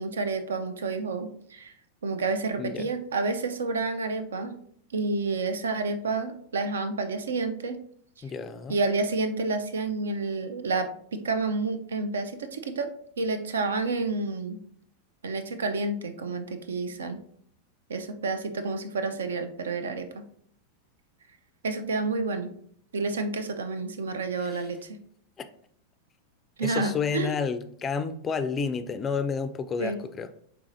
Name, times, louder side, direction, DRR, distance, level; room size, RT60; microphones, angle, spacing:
voice 1, 0.0-1.7 2.0-4.6 4.9-7.8 8.7-12.9 13.2-14.6 15.2-17.2 17.9-20.1 21.6-22.5 22.9-25.0 26.6-27.3 29.8-30.0, right 3 dB, 65° right, 9 dB, 0.4 m, -29 dB
voice 2, 2.6-2.9 8.2-8.8 24.4-24.6 25.4-25.5 26.6-30.3, left 5 dB, 25° left, 10 dB, 0.3 m, -30 dB
4.7 x 3.3 x 2.6 m, 0.64 s
figure-of-eight pair, 90°, 0 cm